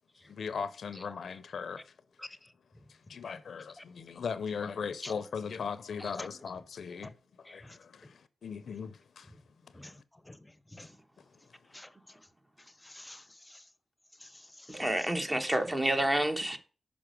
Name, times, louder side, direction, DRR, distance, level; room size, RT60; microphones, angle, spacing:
voice 1, 0.3-1.9 2.9-9.3 9.6-10.0 11.2-11.5, left 6 dB, 80° left, 0.5 m, -39 dB
voice 2, 2.2-2.8 3.8-3.9 5.0-5.1 6.0-6.3 7.5-8.1 9.7-11.0 11.7-12.2 12.6-13.7 14.2-15.5, left 1 dB, 20° left, 0.7 m, -50 dB
voice 3, 14.7-16.6, right 1 dB, 20° right, 1.1 m, -29 dB
6.0 x 5.2 x 5.1 m
cardioid pair, 60°, 0 cm